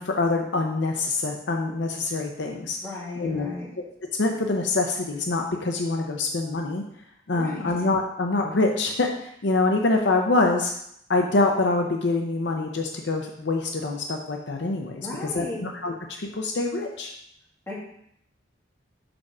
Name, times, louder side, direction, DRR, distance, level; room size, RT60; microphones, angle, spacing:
voice 1, 0.0-2.8 3.2-3.8 4.2-6.8 7.3-10.7 11.1-17.1, left 3 dB, 70° left, 3 dB, 0.7 m, -25 dB
voice 2, 2.8-3.7 7.4-7.7 15.0-15.6 17.7-17.8, left 2 dB, 15° left, -6 dB, 2.1 m, -35 dB
5.1 x 4.7 x 6.0 m, 0.72 s
head